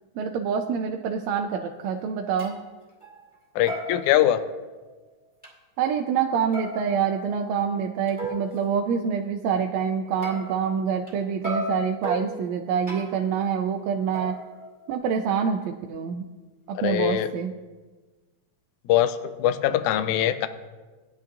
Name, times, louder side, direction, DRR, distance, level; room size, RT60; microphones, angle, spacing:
voice 1, 0.1-2.6 5.8-14.4 14.9-16.3 16.7-17.5, right 7 dB, 80° right, 4 dB, 1.7 m, -26 dB
sound 1, 1.8-1.9 2.4-2.6 3.0-3.4 3.7-4.9 5.4-5.5 6.5-8.6 10.2-11.1 11.4-13.3 14.1-15.3, equal, 5° right, 2.1 m, -36 dB
voice 2, 3.6-4.4 16.8-17.3 18.9-20.5, left 12 dB, 85° left, 11 dB, 2.0 m, -22 dB
17.5 x 10.5 x 2.6 m, 1.3 s
omnidirectional pair, 3.5 m